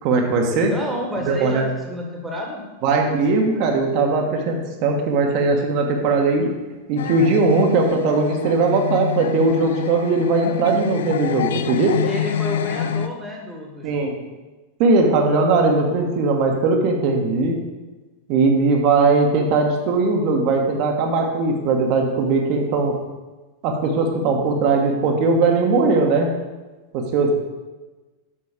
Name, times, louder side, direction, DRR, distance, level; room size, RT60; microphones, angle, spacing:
voice 1, 0.0-0.7 1.3-1.7 2.8-6.5 6.9-12.0 13.8-14.1 14.8-17.6 18.3-22.9 23.6-26.3 26.9-27.3, right 3 dB, 45° right, 2 dB, 1.3 m, -19 dB
voice 2, 0.6-2.6 12.0-14.3, equal, 10° right, 0 dB, 1.6 m, -30 dB
sound 1, 7.0-13.1, left 9 dB, 60° left, 0.4 m, -27 dB
7.5 x 6.1 x 5.0 m, 1.2 s
figure-of-eight pair, 90°, 0 cm